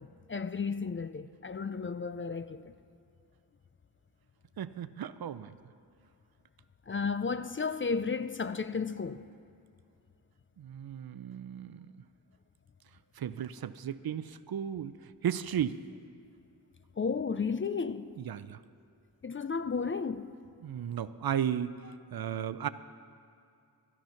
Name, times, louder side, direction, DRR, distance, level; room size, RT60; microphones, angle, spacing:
voice 1, 0.0-2.7 6.9-9.2 17.0-18.1 19.2-20.3, left 5 dB, 30° left, 0.4 m, -33 dB
voice 2, 4.6-5.5 10.6-11.9 13.2-14.9 15.2-15.8 18.2-18.6 20.6-21.8 22.1-22.7, right 9 dB, 60° right, 0.5 m, -34 dB
13.5 x 10.5 x 5.7 m
cardioid pair, 60°, 41 cm